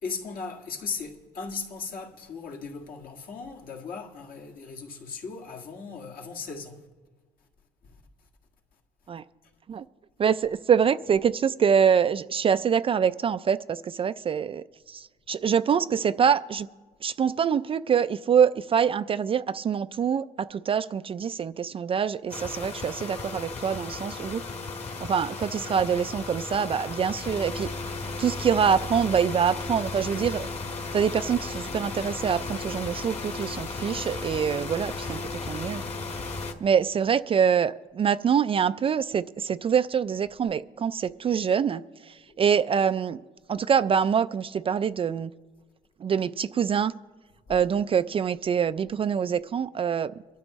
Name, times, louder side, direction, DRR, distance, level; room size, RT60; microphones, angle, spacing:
voice 1, 0.0-6.8 7.8-8.0 42.3-42.4, left 5 dB, 60° left, 2.1 m, -37 dB
voice 2, 10.2-16.7 17.0-24.4 25.0-27.7 28.2-30.5 30.9-35.8 36.6-43.2 43.5-45.3 46.0-46.9 47.5-50.1, right 7 dB, 35° right, 0.4 m, -25 dB
sound 1, 22.3-36.5, left 3 dB, 40° left, 1.7 m, -35 dB
23.5 x 12.0 x 3.1 m
cardioid pair, 110°, 17 cm